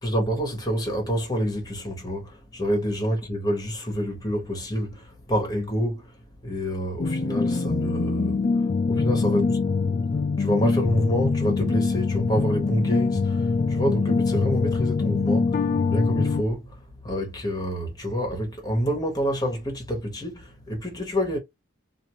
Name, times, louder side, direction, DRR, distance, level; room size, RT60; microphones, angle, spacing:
voice 1, 0.0-6.2 6.4-9.6 10.4-21.4, equal, 20° left, 1.1 m, -27 dB
sound 1, 7.0-16.4, left 4 dB, 35° left, 0.3 m, -24 dB
2.6 x 2.5 x 3.0 m
head